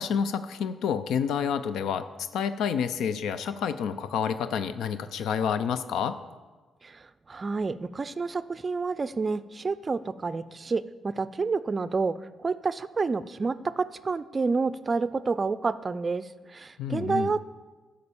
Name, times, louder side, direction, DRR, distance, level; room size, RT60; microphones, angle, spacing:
voice 1, 0.0-6.2 16.8-17.3, left 7 dB, 85° left, 11 dB, 0.4 m, -29 dB
voice 2, 6.8-17.4, right 4 dB, 30° right, 14 dB, 0.4 m, -29 dB
10.5 x 5.2 x 7.0 m, 1.3 s
cardioid pair, 105°, 0 cm